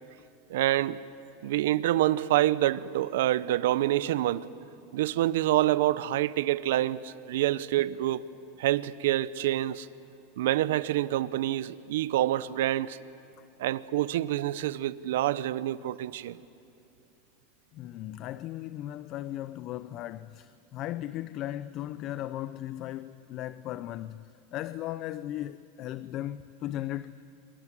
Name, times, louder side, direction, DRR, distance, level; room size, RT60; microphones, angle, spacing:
voice 1, 0.5-1.0 1.4-4.5 4.9-8.2 8.6-9.9 10.4-13.0 13.6-16.4, right 14 dB, 75° right, 0.8 m, -27 dB
voice 2, 17.7-27.1, left 13 dB, 45° left, 0.7 m, -37 dB
29.5 x 24.5 x 7.6 m
supercardioid pair, 115°, 0 cm